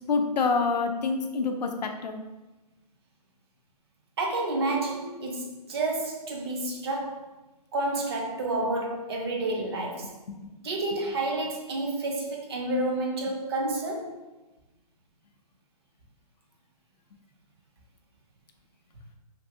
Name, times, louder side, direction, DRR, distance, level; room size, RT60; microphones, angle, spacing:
voice 1, 0.0-2.2, left 4 dB, 90° left, 4 dB, 0.5 m, -27 dB
voice 2, 4.2-7.3 7.7-10.1 10.6-14.1, right 2 dB, 40° right, -1 dB, 0.5 m, -30 dB
2.6 x 2.6 x 2.6 m, 1.1 s
hypercardioid pair, 160°, 21 cm